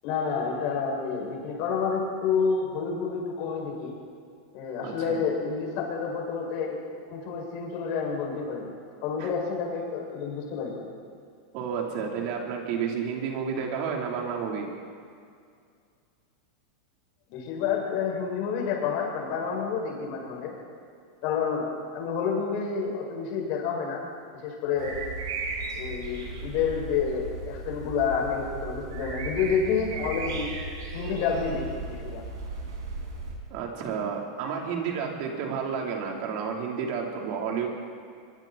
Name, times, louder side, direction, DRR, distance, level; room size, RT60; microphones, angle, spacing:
voice 1, 0.0-4.0 4.5-6.8 7.1-8.7 9.0-10.8 17.3-20.5 21.2-21.7 21.9-24.0 24.4-25.0 25.8-30.5 30.9-32.2, left 6 dB, 55° left, -2 dB, 7.4 m, -29 dB
voice 2, 4.8-5.2 9.2-9.3 11.5-14.7 33.5-37.7, right 6 dB, 55° right, 0 dB, 4.6 m, -31 dB
sound 1, 24.8-33.3, right 3 dB, 80° right, 6.7 m, -36 dB
23.5 x 23.5 x 4.7 m, 2.3 s
hypercardioid pair, 115°, 2 cm